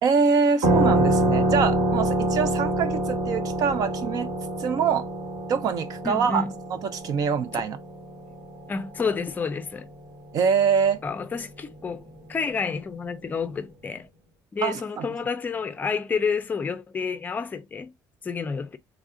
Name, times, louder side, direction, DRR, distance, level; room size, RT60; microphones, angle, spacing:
voice 1, 0.0-4.3 4.6-5.1 5.5-7.8 10.3-11.0 14.6-15.1, right 6 dB, 55° right, 0.7 m, -24 dB
sound 1, 0.6-9.8, right 1 dB, 80° right, 2.2 m, -26 dB
voice 2, 6.0-6.5 8.7-9.9 11.0-12.0 12.3-14.1 14.5-17.9 18.2-18.8, left 5 dB, 20° left, 0.5 m, -29 dB
3.4 x 2.5 x 3.6 m
cardioid pair, 135°, 8 cm